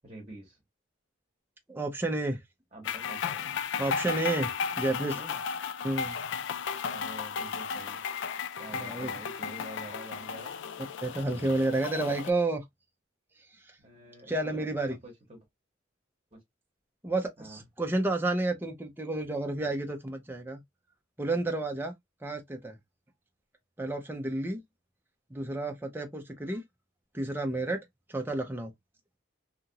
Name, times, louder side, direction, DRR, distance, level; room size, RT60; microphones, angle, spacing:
voice 1, 0.0-0.6 2.7-3.5 4.0-4.1 4.9-5.4 6.9-8.0 8.6-10.5 13.8-15.4 16.3-16.4 17.4-17.6, right 1 dB, 30° right, 1.0 m, -47 dB
voice 2, 1.7-2.4 3.8-4.5 4.8-5.1 5.8-6.2 8.7-9.1 11.0-12.6 13.6-13.8 14.3-15.0 17.0-20.6 21.2-21.9 22.2-22.8 23.8-24.6 25.3-26.6 27.1-27.8 28.1-28.7, right 2 dB, 10° right, 0.5 m, -30 dB
sound 1, 2.8-12.3, left 6 dB, 65° left, 0.3 m, -35 dB
2.8 x 2.4 x 2.8 m
head